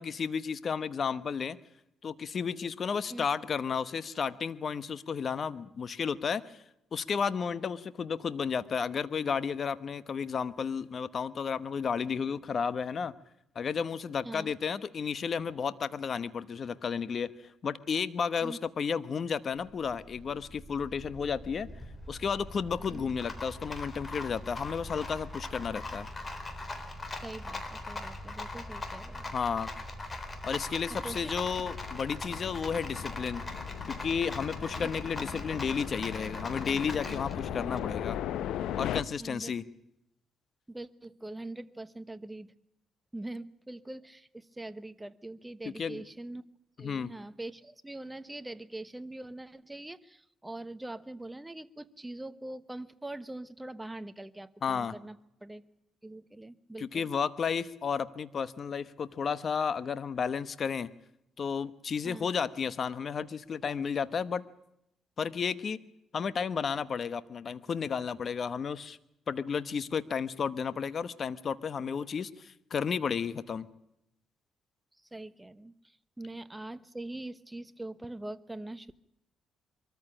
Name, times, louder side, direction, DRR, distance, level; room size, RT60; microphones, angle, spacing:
voice 1, 0.0-1.6 2.0-6.6 6.9-13.1 13.5-21.7 22.1-26.1 29.3-29.7 30.4-33.4 33.9-38.2 38.8-39.6 45.8-46.0 46.8-47.1 54.6-54.9 56.8-60.9 61.4-64.4 65.2-65.8 66.1-69.0 69.3-73.7, left 6 dB, 50° left, 16 dB, 1.1 m, -32 dB
Rattle, 19.7-38.2, left 2 dB, 30° left, 3.8 m, -41 dB
voice 2, 27.2-29.3 31.0-31.3 34.8-34.9 35.3-35.6 39.2-39.5 40.7-42.5 43.1-46.4 46.8-55.2 55.4-55.6 56.0-57.1 62.0-62.3 75.1-79.0, right 2 dB, 10° right, 13 dB, 1.1 m, -43 dB
sound 1, 31.0-39.0, left 11 dB, 85° left, 0.8 m, -38 dB
23.5 x 14.0 x 9.8 m, 0.82 s
cardioid pair, 90°, 0 cm